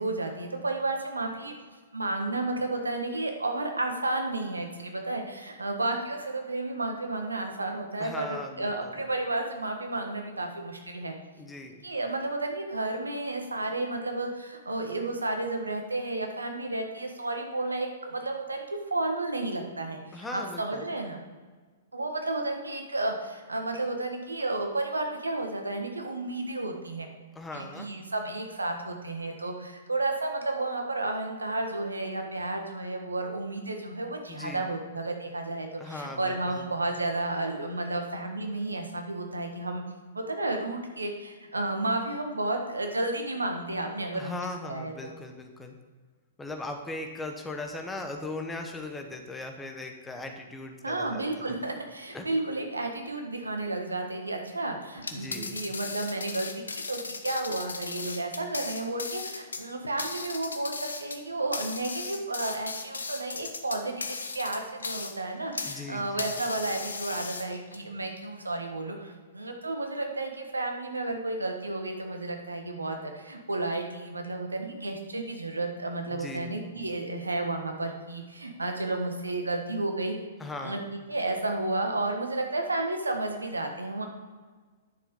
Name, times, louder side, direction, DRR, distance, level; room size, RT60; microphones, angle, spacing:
voice 1, 0.0-1.5 1.9-11.1 11.8-21.2 21.9-27.1 27.5-39.8 40.1-44.3 44.7-45.1 50.8-80.2 80.6-84.1, right 2 dB, 85° right, 3 dB, 1.4 m, -32 dB
voice 2, 8.0-8.9 11.4-11.8 20.1-20.8 27.3-27.9 34.3-34.7 35.8-36.6 44.1-45.8 46.4-51.6 52.1-52.3 55.1-55.6 65.6-66.3 76.1-76.6 80.4-80.9, left 2 dB, 10° left, 4 dB, 1.2 m, -39 dB
sound 1, 55.0-65.8 66.2-67.8, left 4 dB, 75° left, 0.8 m, -37 dB
10.0 x 7.0 x 3.7 m, 1.4 s
figure-of-eight pair, 110°, 0 cm